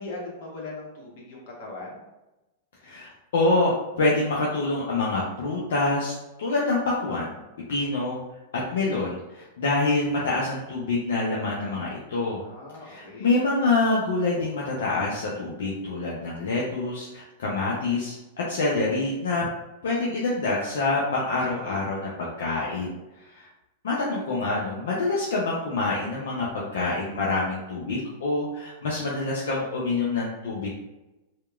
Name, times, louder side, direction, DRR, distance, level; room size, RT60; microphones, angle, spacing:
voice 1, 0.0-2.0 12.4-13.3 21.2-21.8, left 2 dB, 60° left, -3 dB, 1.0 m, -40 dB
voice 2, 2.8-6.1 6.4-7.3 7.7-8.2 8.5-12.4 12.8-19.5 19.8-23.5 23.8-30.7, left 2 dB, 80° left, -5 dB, 0.5 m, -26 dB
2.8 x 2.1 x 2.3 m, 1.0 s
hypercardioid pair, 115°, 0 cm